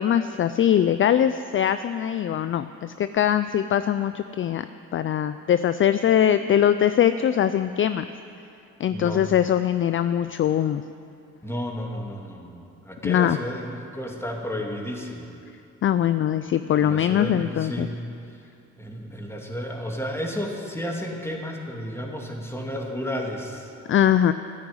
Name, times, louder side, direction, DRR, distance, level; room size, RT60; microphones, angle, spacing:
voice 1, 0.0-4.7 4.9-8.1 8.8-10.8 13.0-13.4 15.8-17.9 23.9-24.3, left 10 dB, 45° left, 12 dB, 0.4 m, -22 dB
voice 2, 8.9-9.2 11.4-15.3 16.7-18.0 18.3-18.4 18.8-23.7, equal, 10° left, 0 dB, 2.5 m, -32 dB
13.5 x 9.6 x 9.6 m, 2.6 s
cardioid pair, 90°, 30 cm